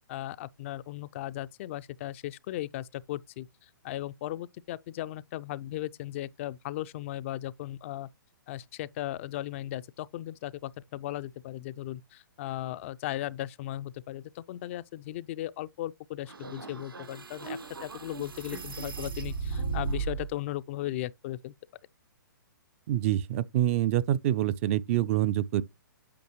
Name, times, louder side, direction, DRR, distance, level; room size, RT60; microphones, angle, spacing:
voice 1, 0.1-8.1 8.5-21.5, left 14 dB, 35° left, 0.3 m, -37 dB
sound 1, 16.3-20.3, right 5 dB, 85° right, 1.5 m, -36 dB
voice 2, 22.9-25.6, right 12 dB, 35° right, 0.4 m, -26 dB
8.6 x 5.8 x 2.9 m
hypercardioid pair, 130°, 11 cm